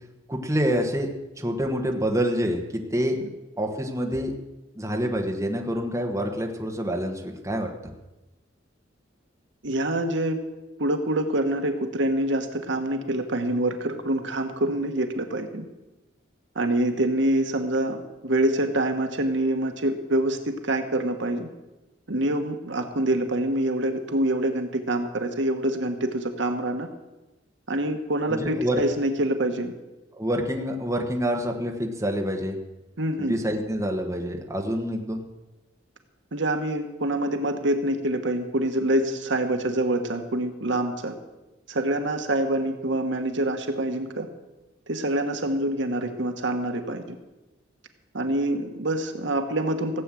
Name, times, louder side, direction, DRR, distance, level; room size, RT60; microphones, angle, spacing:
voice 1, 0.3-1.1 1.4-3.2 3.6-4.3 4.7-7.9 28.3-28.8 30.1-32.6 33.2-35.2, equal, 15° right, 1 dB, 1.4 m, -27 dB
voice 2, 9.6-10.4 10.8-15.6 16.5-21.5 22.1-26.9 27.7-29.7 33.0-33.4 36.3-41.1 41.7-44.3 44.9-47.2 48.1-50.0, right 1 dB, 65° right, 6 dB, 1.3 m, -26 dB
16.5 x 8.3 x 7.6 m, 1.0 s
head